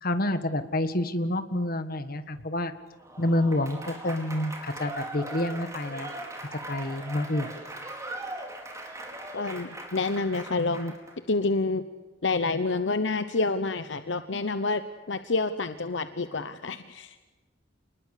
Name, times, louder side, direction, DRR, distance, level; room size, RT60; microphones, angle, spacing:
voice 1, 0.0-2.7 3.2-6.1 6.7-7.5, left 1 dB, 55° left, 10 dB, 1.7 m, -28 dB
Applause / Crowd, 3.0-11.1, right 1 dB, 15° right, 4.5 m, -40 dB
voice 2, 9.3-10.9 11.3-11.8 12.2-14.8 15.1-17.2, left 3 dB, 70° left, 10 dB, 1.0 m, -28 dB
28.0 x 20.5 x 8.4 m, 1.3 s
head